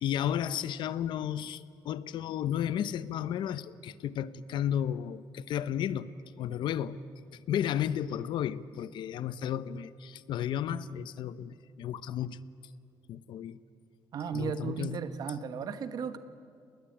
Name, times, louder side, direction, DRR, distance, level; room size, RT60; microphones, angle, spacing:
voice 1, 0.0-6.1 6.4-7.0 7.5-12.4 13.1-13.6 14.3-15.0, left 10 dB, 70° left, 16 dB, 0.8 m, -33 dB
voice 2, 14.1-16.2, right 6 dB, 50° right, 10 dB, 1.3 m, -35 dB
29.5 x 20.0 x 8.8 m, 2.4 s
cardioid pair, 180°, 8 cm